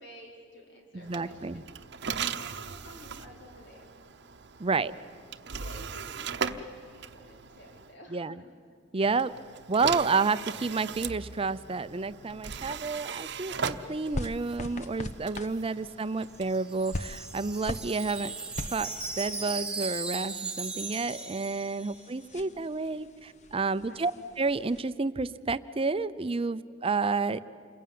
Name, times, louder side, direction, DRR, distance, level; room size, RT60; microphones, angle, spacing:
voice 1, 0.0-1.6 2.4-3.9 4.8-5.1 5.5-8.5 9.2-9.4 22.1-22.6 23.8-24.2, equal, 65° left, 0 dB, 4.8 m, -52 dB
voice 2, 0.9-1.6 4.6-4.9 8.1-8.4 8.9-9.3 9.7-18.3 18.7-18.9 19.2-24.1 24.4-27.4, right 4 dB, 30° right, 14 dB, 0.6 m, -30 dB
sound 1, 1.0-7.9 9.0-19.5, right 6 dB, 65° right, 0.9 m, -39 dB
sound 2, 13.9-24.8, left 1 dB, 40° left, 1.0 m, -42 dB
Wind chime, 16.2-22.2, right 4 dB, 5° right, 1.8 m, -37 dB
28.0 x 21.0 x 9.5 m, 2.2 s
head